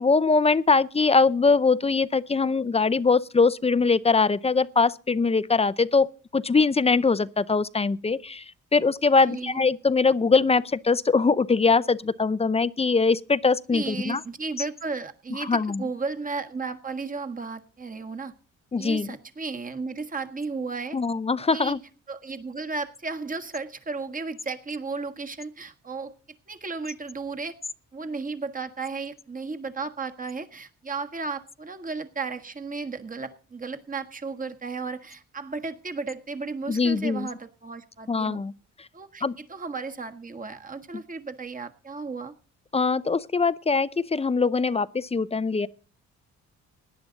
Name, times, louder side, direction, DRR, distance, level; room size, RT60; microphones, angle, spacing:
voice 1, 0.0-14.2 15.4-15.8 18.7-19.2 20.9-21.8 36.7-37.3 38.1-38.5 39.2-39.4 42.7-45.7, left 4 dB, 20° left, 0.5 m, -22 dB
voice 2, 9.3-9.6 13.7-18.3 18.8-21.0 21.5-21.8 22.1-26.1 26.5-27.6 27.9-38.4 38.9-42.3, right 4 dB, 25° right, 1.6 m, -34 dB
17.5 x 10.5 x 4.0 m
cardioid pair, 90°, 30 cm